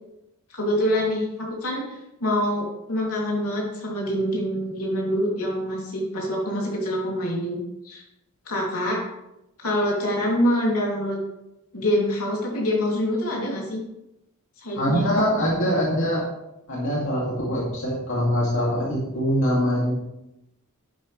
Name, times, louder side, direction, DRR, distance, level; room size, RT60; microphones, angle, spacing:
voice 1, 0.5-7.6 7.8-8.0 8.5-9.0 9.6-11.2 11.7-13.8 14.6-15.1, equal, 80° left, -2 dB, 3.0 m, -25 dB
voice 2, 14.8-16.2 16.7-19.9, equal, 60° left, -5 dB, 2.5 m, -23 dB
11.0 x 8.3 x 3.3 m, 0.89 s
head